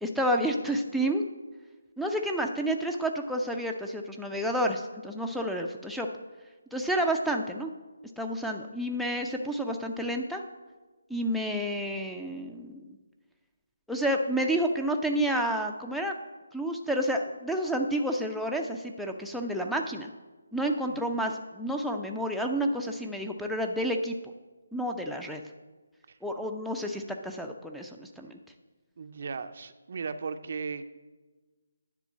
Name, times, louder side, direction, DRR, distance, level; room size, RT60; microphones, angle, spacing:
voice 1, 0.0-1.2 2.0-6.1 6.7-7.7 8.2-10.4 11.1-13.0 13.9-16.2 16.5-20.1 20.5-24.2 24.7-25.4 26.2-28.4, right 1 dB, ahead, 2 dB, 0.5 m, -30 dB
voice 2, 29.0-30.8, right 5 dB, 50° right, 10 dB, 0.5 m, -36 dB
10.0 x 3.7 x 7.2 m, 1.3 s
figure-of-eight pair, 155°, 0 cm